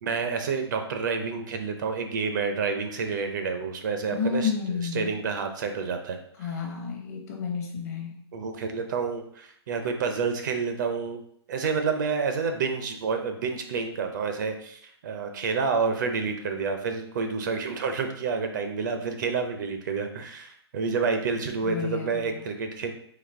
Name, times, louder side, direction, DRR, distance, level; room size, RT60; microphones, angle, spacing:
voice 1, 0.0-4.5 4.9-6.2 8.3-11.2 11.5-22.9, right 5 dB, 45° right, 6 dB, 0.5 m, -29 dB
voice 2, 4.1-5.2 6.3-8.2 21.6-22.5, left 6 dB, 35° left, 1 dB, 0.9 m, -31 dB
4.1 x 2.8 x 4.4 m, 0.66 s
hypercardioid pair, 160°, 14 cm